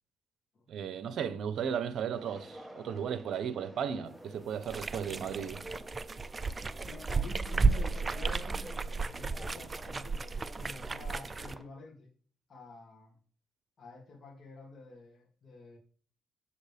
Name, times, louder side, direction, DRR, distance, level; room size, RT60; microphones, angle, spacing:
voice 1, 0.7-5.6, right 7 dB, 70° right, 0.9 m, -35 dB
sound 1, 2.1-11.6, right 1 dB, 5° right, 1.3 m, -50 dB
sound 2, 4.6-11.6, right 4 dB, 25° right, 0.4 m, -33 dB
voice 2, 6.8-12.1 12.5-13.1 13.8-15.8, left 3 dB, 45° left, 2.7 m, -49 dB
7.1 x 7.0 x 3.5 m
cardioid pair, 90°, 0 cm